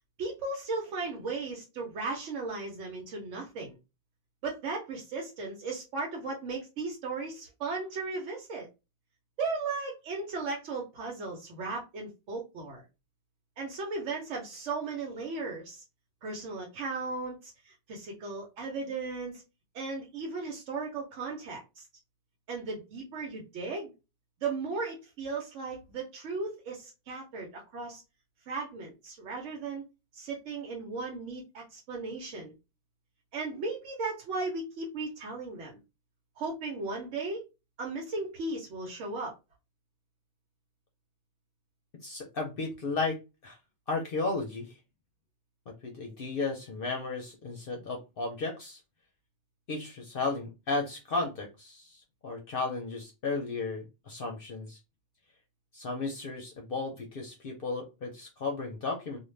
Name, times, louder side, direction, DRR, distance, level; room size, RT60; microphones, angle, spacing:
voice 1, 0.2-3.8 4.4-8.7 9.4-12.8 13.6-15.8 16.2-19.4 19.7-21.9 22.5-23.9 24.4-28.0 28.5-29.8 30.1-32.5 33.3-35.8 36.4-37.5 37.8-39.3, right 3 dB, 90° right, -1 dB, 1.1 m, -36 dB
voice 2, 42.0-43.2 43.4-43.6 43.9-44.7 45.7-48.8 49.7-54.8 55.7-59.2, left 3 dB, 60° left, 2 dB, 0.7 m, -34 dB
2.4 x 2.2 x 3.1 m, 0.27 s
omnidirectional pair, 1.2 m